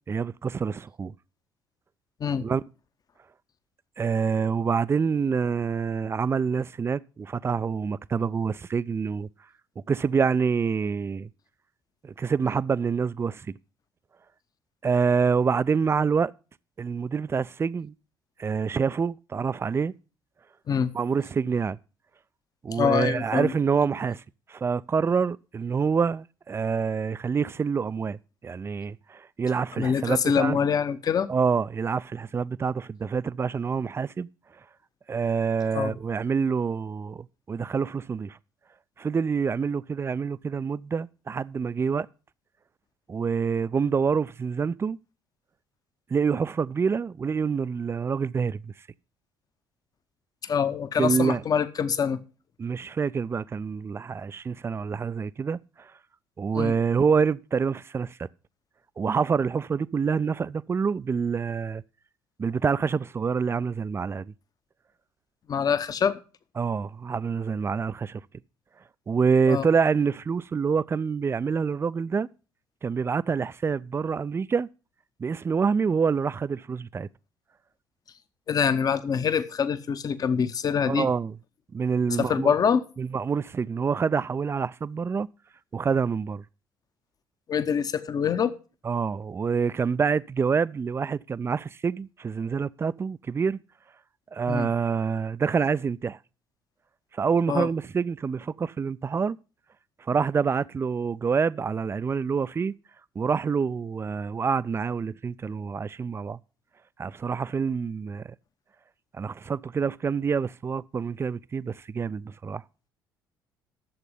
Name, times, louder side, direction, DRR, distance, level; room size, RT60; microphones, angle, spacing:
voice 1, 0.1-1.1 2.4-2.6 4.0-9.3 9.9-11.3 12.0-13.6 14.8-16.3 16.8-17.9 18.4-19.9 20.9-21.8 22.6-24.2 24.5-30.6 31.3-34.3 35.1-38.4 39.0-42.1 43.1-45.0 46.1-48.7 51.0-51.4 52.6-55.9 56.4-58.3 59.0-61.8 62.4-64.3 66.6-68.2 69.1-72.3 72.8-74.7 75.2-77.1 80.9-81.4 81.7-82.5 83.0-85.3 85.7-86.4 88.8-93.6 94.3-96.2 97.1-99.4 100.0-102.7 103.2-106.4 107.0-108.3 109.1-112.6, right 5 dB, 25° right, 0.4 m, -26 dB
voice 2, 22.7-23.5 29.8-31.3 35.7-36.0 50.4-52.2 56.5-56.7 65.5-66.2 69.5-69.7 78.5-81.1 82.1-82.8 87.5-88.5 94.5-94.7 97.5-97.7, left 7 dB, 35° left, 1.0 m, -25 dB
11.0 x 7.7 x 5.4 m
figure-of-eight pair, 50°, 11 cm